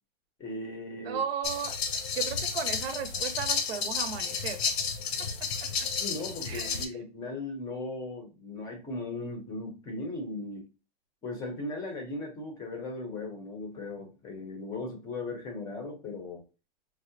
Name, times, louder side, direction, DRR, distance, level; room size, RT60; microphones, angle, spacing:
voice 1, 0.4-1.2 6.0-10.7 11.2-16.4, left 2 dB, 10° left, 2 dB, 0.6 m, -37 dB
voice 2, 1.0-4.6 6.5-6.9, right 7 dB, 75° right, 8 dB, 0.8 m, -35 dB
Gas Water Boiler, 1.4-6.9, left 5 dB, 85° left, 0.8 m, -32 dB
4.6 x 2.1 x 2.6 m, 0.31 s
supercardioid pair, 165°, 31 cm